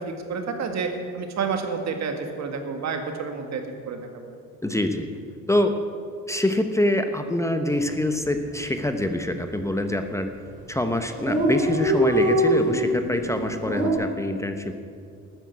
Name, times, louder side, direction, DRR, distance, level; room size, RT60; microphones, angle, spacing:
voice 1, 0.0-4.4, right 5 dB, 55° right, 5 dB, 2.0 m, -30 dB
voice 2, 4.6-5.1 5.5-5.8 6.3-10.3 10.7-14.7, left 1 dB, 10° left, 7 dB, 1.0 m, -25 dB
Dog, 7.7-8.0 8.3-8.4 8.6-9.3 9.9-10.1 10.5-10.6 10.7-10.8 11.0-13.9, equal, 25° right, 4.1 m, -23 dB
12.5 x 9.1 x 8.4 m, 2.3 s
supercardioid pair, 75°, 32 cm